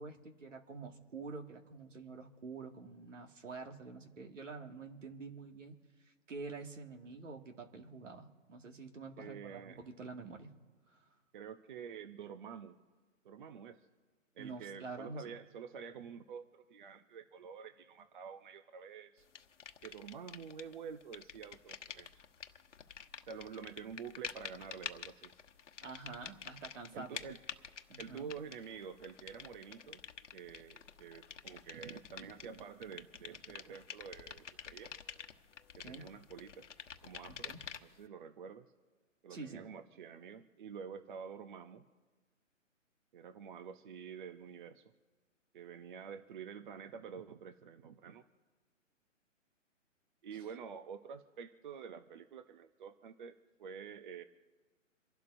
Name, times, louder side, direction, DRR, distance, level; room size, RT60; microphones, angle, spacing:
voice 1, 0.0-5.8 6.1-10.5 10.9-11.0 14.4-15.4 25.8-27.3 27.9-28.3 35.8-36.0 37.5-37.6 39.3-39.7, right 4 dB, 70° right, 4 dB, 2.0 m, -47 dB
voice 2, 9.2-9.8 11.3-12.8 13.2-13.9 14.4-19.2 19.8-22.1 23.3-25.3 26.9-27.4 28.0-30.0 30.3-34.9 35.9-36.7 37.0-37.5 37.8-38.7 39.2-41.8 43.1-44.9 45.5-48.2 50.2-54.2, right 7 dB, 40° right, 10 dB, 0.7 m, -48 dB
sound 1, 19.4-20.8 21.0-38.0, left 7 dB, 65° left, 1.1 m, -49 dB
28.0 x 12.0 x 2.6 m, 1.4 s
figure-of-eight pair, 140°, 39 cm